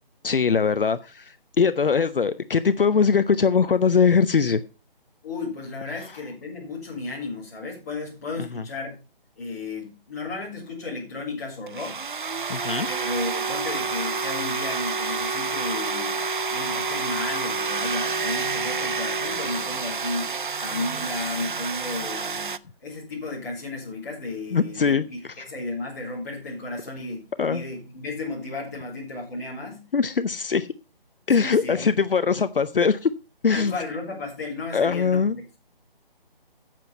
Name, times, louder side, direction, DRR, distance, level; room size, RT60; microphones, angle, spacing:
voice 1, 0.2-4.6 8.5-8.6 12.5-12.9 24.5-25.0 27.4-27.6 29.9-30.7 31.3-33.1 33.4-33.7 34.7-35.3, left 5 dB, 65° left, 0.7 m, -21 dB
voice 2, 5.2-9.0 9.4-12.1 12.9-27.2 27.5-29.8 31.3-32.0 33.5-35.6, left 3 dB, 15° left, 3.7 m, -34 dB
sound 1, 11.7-22.6, right 4 dB, 55° right, 0.6 m, -28 dB
9.5 x 7.7 x 5.5 m
hypercardioid pair, 180°, 29 cm